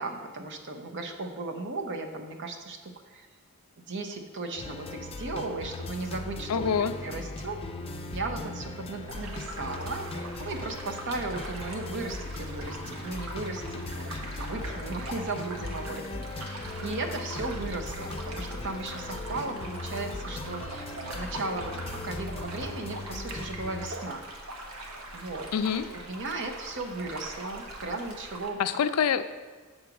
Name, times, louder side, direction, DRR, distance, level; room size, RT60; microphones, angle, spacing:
voice 1, 0.0-3.3 3.8-6.7 7.0-7.6 8.1-20.9 21.1-24.2 24.8-25.5 25.9-28.6, right 3 dB, 55° right, 4 dB, 0.7 m, -36 dB
sound 1, 4.6-23.9, left 2 dB, 25° left, 0.5 m, -38 dB
voice 2, 6.5-6.9 25.5-25.9 28.6-29.2, left 7 dB, 85° left, 11 dB, 0.4 m, -25 dB
sound 2, 9.1-28.5, right 1 dB, 85° right, 1.1 m, -42 dB
7.2 x 3.9 x 5.9 m, 1.4 s
head